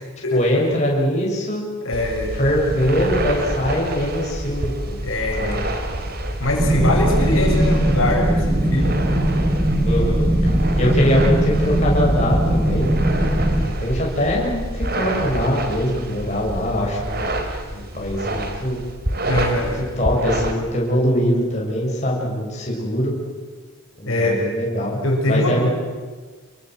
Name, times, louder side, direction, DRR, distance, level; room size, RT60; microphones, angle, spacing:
voice 1, 0.3-1.6 2.3-5.0 5.4-5.6 9.8-10.3 10.8-12.9 13.6-17.3 17.7-18.8 19.6-23.1 24.0-25.0 25.3-25.7, equal, 30° left, -3 dB, 6.7 m, -22 dB
voice 2, 1.8-2.3 5.0-5.6 6.4-9.0 19.3-19.8 24.1-24.4 25.0-25.7, left 1 dB, 70° left, 0 dB, 6.4 m, -22 dB
sound 1, 1.9-20.5, right 1 dB, 45° right, 3.2 m, -27 dB
sound 2, 6.6-13.7, right 1 dB, 20° right, 1.6 m, -20 dB
28.0 x 23.5 x 7.9 m, 1.4 s
head